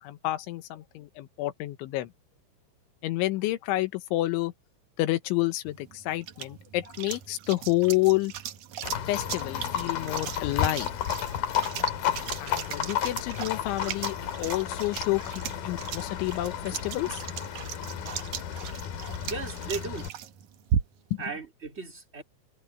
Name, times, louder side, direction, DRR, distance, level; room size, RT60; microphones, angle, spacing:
voice 1, 0.0-2.1 3.0-4.5 5.0-8.3 9.1-10.9 12.4-17.2 21.1-21.2, left 18 dB, 85° left, 3.6 m, -29 dB
sound 1, 5.7-21.2, right 9 dB, 80° right, 1.7 m, -37 dB
Livestock farm animals working animals, 8.8-20.1, left 10 dB, 60° left, 3.5 m, -32 dB
voice 2, 19.3-20.1 21.2-22.2, right 4 dB, 15° right, 3.1 m, -36 dB
omnidirectional pair, 5.3 m